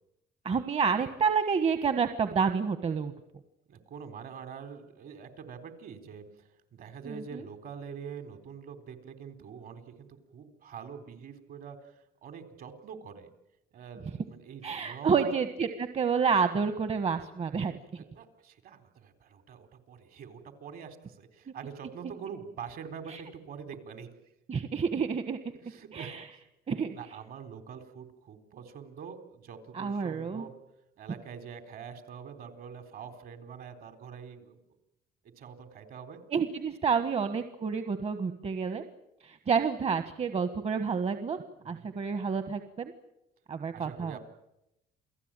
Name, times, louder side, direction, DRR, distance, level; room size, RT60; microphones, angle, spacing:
voice 1, 0.4-3.1 7.0-7.4 14.6-18.0 23.1-23.2 24.5-25.5 25.9-26.2 26.7-26.9 29.7-30.4 36.3-38.8 39.2-41.4 41.6-42.9 43.5-44.2, right 6 dB, 40° right, 9 dB, 1.5 m, -29 dB
voice 2, 3.7-10.1 10.3-13.3 13.7-15.4 18.0-24.1 25.6-26.4 26.9-30.5 31.0-34.6 35.4-36.2 41.6-41.9 43.7-44.2, right 7 dB, 60° right, 8 dB, 4.0 m, -45 dB
28.5 x 17.5 x 9.1 m, 0.87 s
cardioid pair, 110°, 17 cm